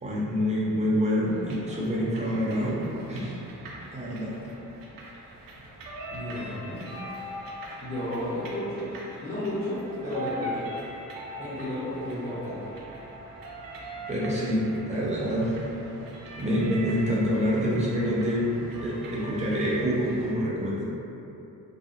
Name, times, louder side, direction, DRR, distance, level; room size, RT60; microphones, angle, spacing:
voice 1, 0.0-2.8 3.1-3.3 3.9-4.3 14.1-15.6 16.4-18.5 18.8-20.8, equal, 20° right, -7 dB, 0.5 m, -26 dB
sound 1, 1.2-20.3, right 1 dB, 80° right, 0.5 m, -41 dB
voice 2, 6.1-6.9 7.8-8.9 9.2-10.7 11.4-12.7, left 1 dB, 25° left, -14 dB, 0.6 m, -32 dB
2.7 x 2.0 x 2.4 m, 2.8 s
wide cardioid pair, 125°, 34 cm